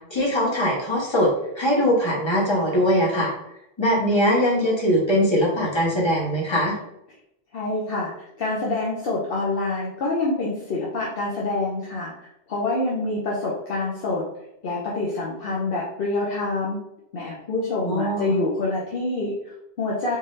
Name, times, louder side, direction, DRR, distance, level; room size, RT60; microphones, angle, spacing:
voice 1, 0.1-3.3 3.8-6.8 17.9-18.4, equal, 25° left, -4 dB, 1.2 m, -21 dB
voice 2, 7.5-8.1 8.4-12.1 12.5-14.2 14.6-16.8 17.1-20.2, left 2 dB, 65° left, -4 dB, 0.9 m, -26 dB
3.8 x 2.7 x 3.2 m, 0.80 s
omnidirectional pair, 1.0 m